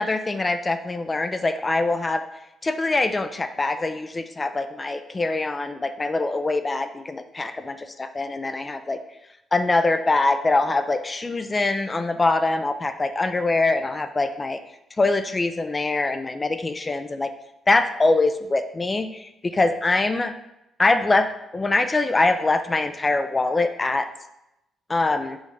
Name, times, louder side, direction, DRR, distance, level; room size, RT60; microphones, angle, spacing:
voice 1, 0.0-2.3 2.6-9.0 9.5-14.6 15.0-17.3 17.7-20.3 20.8-24.1 24.9-25.4, left 2 dB, 25° left, 9 dB, 0.5 m, -23 dB
6.3 x 3.1 x 5.2 m, 0.87 s
cardioid pair, 90°, 0 cm